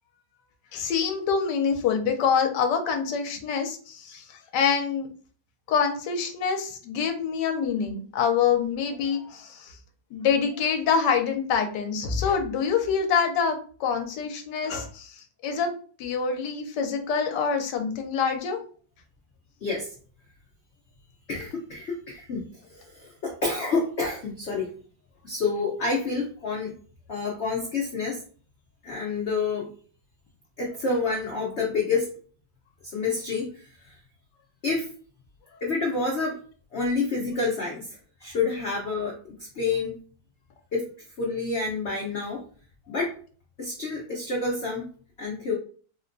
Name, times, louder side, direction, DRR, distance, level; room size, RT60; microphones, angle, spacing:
voice 1, 0.7-5.1 5.7-9.8 10.1-15.7 16.0-18.6, left 6 dB, 70° left, 5 dB, 1.1 m, -26 dB
voice 2, 21.3-24.7 25.2-26.7 27.1-28.2 28.8-29.7 30.6-32.1 32.8-33.9 34.6-34.9 35.6-36.4 36.7-40.0 40.7-40.9 41.2-42.4 42.9-43.1 43.6-44.9 45.2-45.5, left 4 dB, 85° left, -2 dB, 0.6 m, -28 dB
4.3 x 2.2 x 2.5 m, 0.42 s
omnidirectional pair, 2.2 m